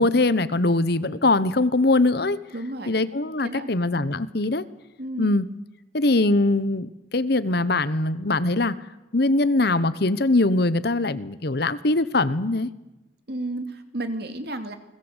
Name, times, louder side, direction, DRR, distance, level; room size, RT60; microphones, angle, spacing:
voice 1, 0.0-2.4 2.9-4.6 5.2-5.5 5.9-8.7 9.1-12.7, left 2 dB, 55° left, 15 dB, 1.2 m, -22 dB
voice 2, 2.5-3.0 3.4-3.7 5.0-5.3 13.3-14.8, right 1 dB, 55° right, 8 dB, 2.7 m, -32 dB
29.5 x 21.0 x 8.2 m, 0.97 s
head